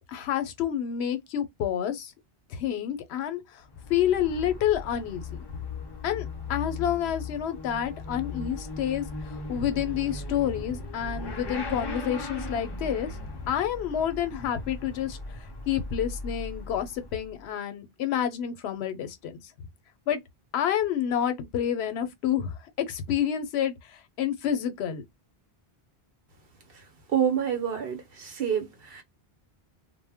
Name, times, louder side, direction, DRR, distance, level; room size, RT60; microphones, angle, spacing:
voice 1, 0.1-2.1 2.5-3.6 3.9-5.5 6.0-13.2 13.5-19.4 20.1-20.2 20.5-25.0, left 9 dB, 90° left, 0.8 m, -29 dB
Motorcycle / Accelerating revving vroom, 3.6-17.4, left 3 dB, 40° left, 0.3 m, -38 dB
voice 2, 27.1-29.0, right 8 dB, 65° right, 0.9 m, -28 dB
2.1 x 2.0 x 3.3 m
omnidirectional pair, 1.1 m